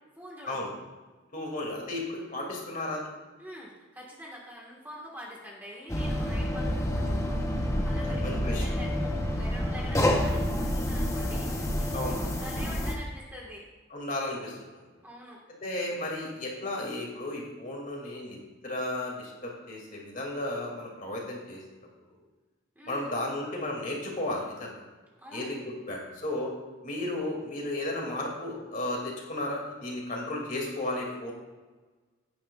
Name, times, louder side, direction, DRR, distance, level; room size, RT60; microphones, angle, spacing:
voice 1, 0.2-0.7 3.4-13.7 15.0-15.4 22.7-23.1 25.2-25.5, equal, 10° right, -3 dB, 1.4 m, -45 dB
voice 2, 1.3-3.1 8.0-8.7 11.9-12.2 13.9-14.8 15.6-18.4 18.6-21.6 22.9-24.8 25.3-25.6 25.9-26.5 26.8-31.3, left 1 dB, 40° left, -1 dB, 2.3 m, -34 dB
sound 1, 5.9-12.9, left 1 dB, 15° left, 0.8 m, -28 dB
16.5 x 9.3 x 2.4 m, 1.3 s
head